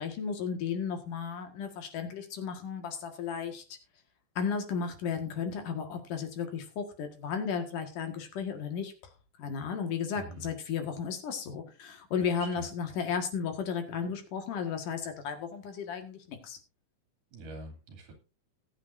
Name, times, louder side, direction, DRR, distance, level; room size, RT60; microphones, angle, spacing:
voice 1, 0.0-3.6 4.4-8.9 9.4-16.6, left 6 dB, 75° left, 5 dB, 3.3 m, -34 dB
voice 2, 10.2-10.5 12.4-12.7 17.3-18.1, right 2 dB, 70° right, 3 dB, 4.4 m, -44 dB
20.5 x 8.1 x 2.6 m, 0.32 s
omnidirectional pair, 3.8 m